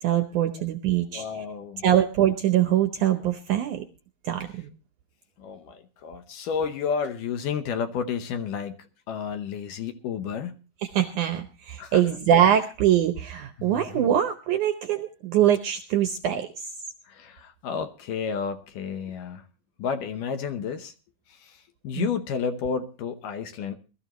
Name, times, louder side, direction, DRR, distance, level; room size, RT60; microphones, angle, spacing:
voice 1, 0.0-1.3 1.8-3.8 4.2-4.7 10.8-16.7 21.9-22.1, right 10 dB, 75° right, 8 dB, 1.9 m, -23 dB
voice 2, 1.1-1.8 5.4-10.6 11.8-12.0 13.6-14.1 17.1-19.4 19.8-20.9 21.3-23.8, left 6 dB, 70° left, 8 dB, 2.3 m, -31 dB
21.0 x 13.5 x 3.0 m, 0.34 s
omnidirectional pair, 4.4 m